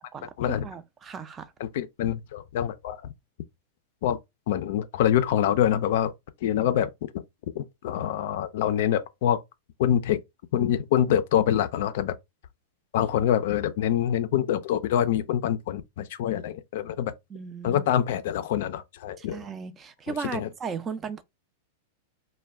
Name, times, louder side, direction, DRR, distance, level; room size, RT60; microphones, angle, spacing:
voice 1, 0.1-1.5 17.3-17.8 19.2-21.2, right 5 dB, 25° right, 0.4 m, -36 dB
voice 2, 1.6-3.0 4.0-4.2 4.5-6.1 6.4-7.2 7.5-9.4 9.8-10.2 10.5-12.1 12.9-17.1 17.6-19.4 20.1-20.5, left 10 dB, 65° left, 0.4 m, -25 dB
2.2 x 2.1 x 3.4 m
hypercardioid pair, 120°, 0 cm